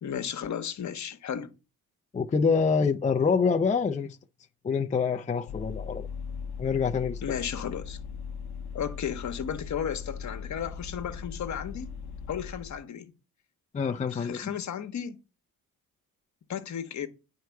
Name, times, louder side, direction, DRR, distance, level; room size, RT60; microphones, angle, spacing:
voice 1, 0.0-1.5 7.2-8.0 8.7-11.9 12.3-13.1 14.1-15.2 16.5-17.1, left 8 dB, 50° left, 1.1 m, -34 dB
voice 2, 2.1-4.2 4.6-6.1 6.6-7.2 13.7-14.5, left 5 dB, 20° left, 0.5 m, -26 dB
Vehicle, 5.5-12.8, left 6 dB, 90° left, 0.6 m, -39 dB
9.5 x 4.7 x 4.6 m
cardioid pair, 95°, 36 cm